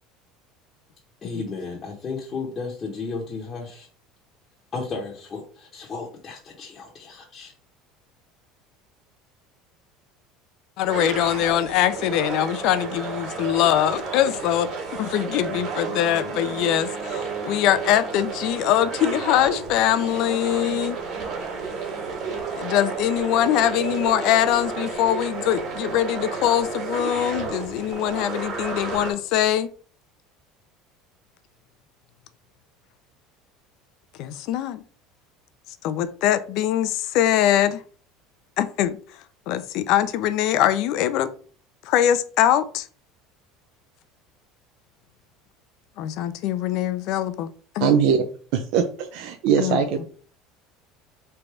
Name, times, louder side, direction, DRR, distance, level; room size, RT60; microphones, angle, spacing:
voice 1, 1.2-3.9 4.7-7.5, left 4 dB, 30° left, -3 dB, 0.8 m, -34 dB
voice 2, 10.8-21.0 22.6-29.7 34.2-34.8 35.8-37.8 38.6-39.0 39.5-41.3 41.8-42.9 46.0-47.9 49.6-49.8, left 11 dB, 60° left, 13 dB, 0.4 m, -22 dB
sound 1, 10.9-29.1, right 4 dB, 45° right, 1.6 m, -31 dB
voice 3, 47.8-48.2 48.5-50.0, right 7 dB, 65° right, 5 dB, 0.4 m, -21 dB
3.3 x 2.6 x 4.5 m, 0.42 s
cardioid pair, 135°, 0 cm